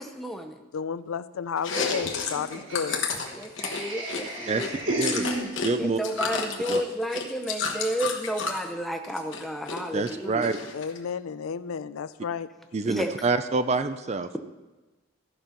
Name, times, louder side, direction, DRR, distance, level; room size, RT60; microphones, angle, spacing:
voice 1, 0.0-0.6 3.3-5.2 5.8-10.5 12.8-13.1, equal, ahead, 4 dB, 0.7 m, -32 dB
voice 2, 0.7-3.1 10.7-12.5, left 6 dB, 85° left, 15 dB, 0.4 m, -32 dB
Chewing mastication, 1.6-5.7 6.0-8.6 9.0-9.8 10.1-11.0, left 5 dB, 65° left, 1.2 m, -31 dB
Laughter, 1.7-6.0, right 1 dB, 60° right, 2.7 m, -33 dB
voice 3, 5.0-5.3 5.6-6.0 6.7-6.8 9.9-10.6 12.7-14.3, right 3 dB, 30° right, 11 dB, 0.4 m, -26 dB
14.0 x 5.3 x 5.7 m, 1.2 s
head